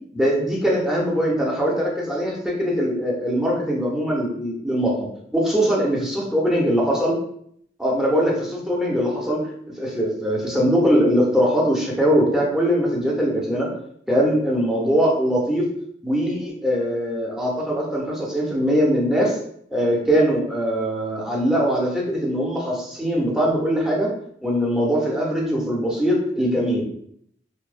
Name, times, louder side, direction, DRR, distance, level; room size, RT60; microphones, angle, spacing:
voice 1, 0.1-7.2 7.8-9.4 9.8-13.7 14.1-15.7 16.0-19.3 19.7-24.1 24.4-26.8, equal, 5° right, -4 dB, 0.5 m, -21 dB
2.6 x 2.0 x 2.4 m, 0.68 s
head